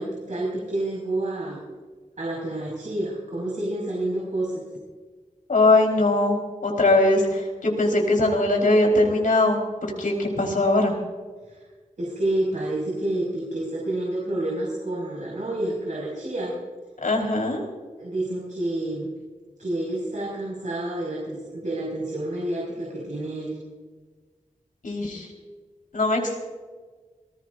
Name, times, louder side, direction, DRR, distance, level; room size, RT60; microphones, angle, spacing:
voice 1, 0.0-1.6 2.2-4.6 12.0-16.5 18.0-19.1 19.6-23.6, right 1 dB, 65° right, -4 dB, 5.3 m, -29 dB
voice 2, 5.5-10.9 17.0-17.6 24.8-25.3 25.9-26.4, left 2 dB, 85° left, 1 dB, 4.1 m, -21 dB
27.5 x 19.5 x 2.6 m, 1.4 s
wide cardioid pair, 95°, 14 cm